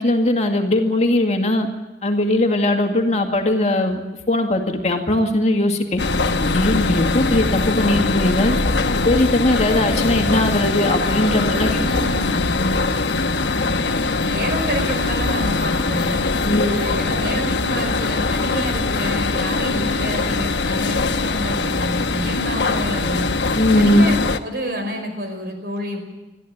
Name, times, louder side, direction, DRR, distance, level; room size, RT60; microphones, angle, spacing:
voice 1, 0.0-1.7 2.0-4.0 4.3-6.0 6.4-8.6 8.9-11.8 12.5-12.8 16.4-16.8 23.5-24.1, left 1 dB, 40° left, 3 dB, 2.1 m, -19 dB
sound 1, 6.0-24.4, left 3 dB, 90° left, 1.1 m, -22 dB
voice 2, 11.5-12.4 14.2-16.3 16.6-23.3 23.7-26.0, equal, 60° right, 4 dB, 5.1 m, -28 dB
22.0 x 14.0 x 9.5 m, 1.1 s
head